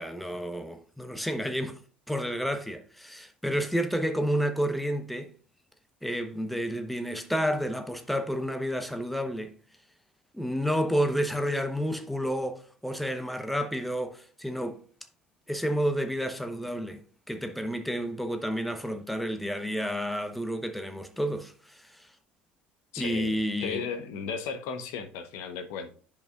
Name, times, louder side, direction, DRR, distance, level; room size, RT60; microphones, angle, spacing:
voice 1, 0.0-1.8 2.1-5.3 6.0-9.6 10.3-14.8 15.5-17.0 17.3-22.1 23.0-23.9, equal, ahead, 0.9 m, -30 dB
voice 2, 22.9-23.3 23.6-25.9, left 6 dB, 65° left, 1.0 m, -35 dB
10.5 x 5.3 x 2.4 m
hypercardioid pair, 60°, 5 cm